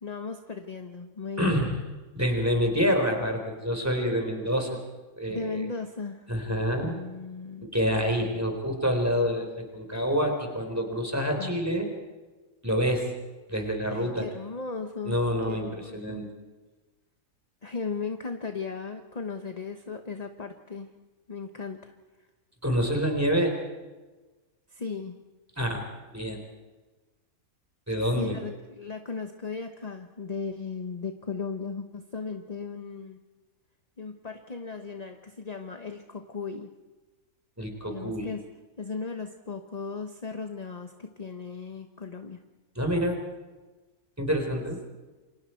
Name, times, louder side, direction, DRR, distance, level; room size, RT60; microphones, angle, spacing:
voice 1, 0.0-1.8 5.3-6.3 6.8-7.7 11.4-11.6 13.9-15.2 15.5-16.2 17.6-20.9 21.3-21.9 24.7-25.2 28.1-33.2 34.0-36.7 37.9-38.4 38.8-42.4, left 4 dB, 30° left, 6 dB, 1.1 m, -36 dB
voice 2, 1.4-1.7 2.1-4.8 5.2-5.6 6.3-7.0 7.6-11.9 12.6-13.1 13.5-14.3 15.0-16.3 22.6-23.6 25.6-25.8 26.1-26.4 27.9-28.4 37.6-38.3 42.8-43.2 44.2-44.8, equal, 10° right, 3 dB, 4.1 m, -27 dB
28.5 x 25.0 x 4.6 m, 1.3 s
omnidirectional pair, 1.6 m